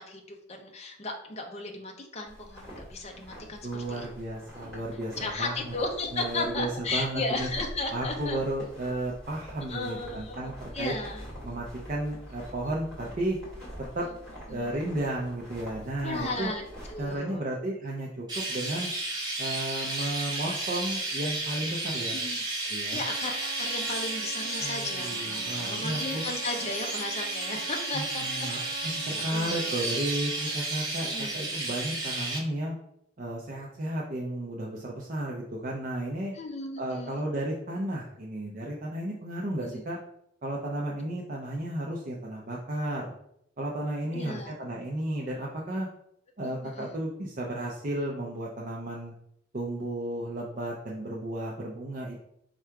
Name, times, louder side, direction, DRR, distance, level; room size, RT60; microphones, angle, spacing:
voice 1, 0.1-4.1 5.2-8.4 9.7-11.3 14.5-14.6 16.0-16.6 16.9-17.5 22.1-22.4 22.9-29.9 31.1-31.7 36.3-37.2 39.6-39.8 44.1-44.5 46.4-47.0, left 2 dB, 30° left, 2 dB, 0.6 m, -35 dB
sound 1, 2.3-17.2, equal, 5° left, 1.7 m, -45 dB
voice 2, 3.6-5.7 6.1-7.5 7.9-10.9 11.4-13.4 13.9-14.1 14.5-16.5 17.0-18.9 19.4-22.2 22.7-23.0 24.6-26.2 27.9-32.8 33.2-36.3 36.8-40.0 40.4-43.1 43.6-45.9 46.4-49.1 49.5-52.2, right 1 dB, 40° right, -3 dB, 0.5 m, -33 dB
Chirp tweet, 18.3-32.4, right 2 dB, 20° right, 1.1 m, -33 dB
Trumpet, 23.0-30.6, right 4 dB, 70° right, 0.9 m, -45 dB
4.5 x 2.4 x 4.4 m, 0.75 s
head